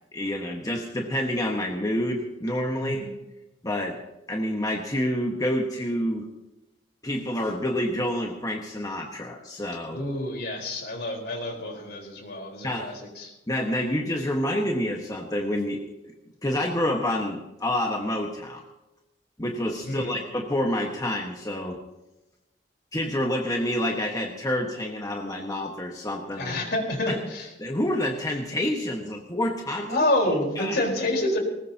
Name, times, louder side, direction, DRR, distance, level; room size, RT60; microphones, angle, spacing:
voice 1, 0.1-3.1 3.6-4.0 4.3-6.3 7.0-10.0 12.6-12.9 13.5-15.8 16.0-16.1 16.4-18.6 19.4-21.8 22.9-26.5 27.1-27.2 27.6-30.0 30.6-30.8, left 1 dB, 20° left, 1 dB, 1.4 m, -28 dB
voice 2, 2.8-3.1 9.9-13.3 19.9-20.2 26.4-27.5 29.9-31.4, left 1 dB, 60° left, 1 dB, 4.2 m, -28 dB
20.0 x 20.0 x 2.9 m, 0.97 s
head